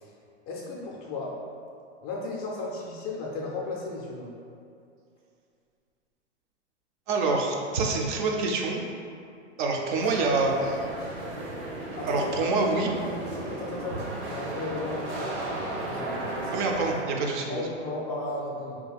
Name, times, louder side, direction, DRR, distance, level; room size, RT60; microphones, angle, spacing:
voice 1, 0.5-1.4 2.0-4.3 12.0-12.3 13.0-13.1 13.5-14.0 14.3-15.4 15.8-16.6 17.5-18.8, left 2 dB, 35° left, -3 dB, 0.4 m, -35 dB
voice 2, 7.1-8.8 9.6-10.8 12.0-12.9 16.5-17.6, right 3 dB, 45° right, 1 dB, 0.5 m, -26 dB
sound 1, 10.0-17.0, right 1 dB, 70° right, 1.1 m, -35 dB
2.8 x 2.2 x 4.0 m, 2.5 s
hypercardioid pair, 130°, 36 cm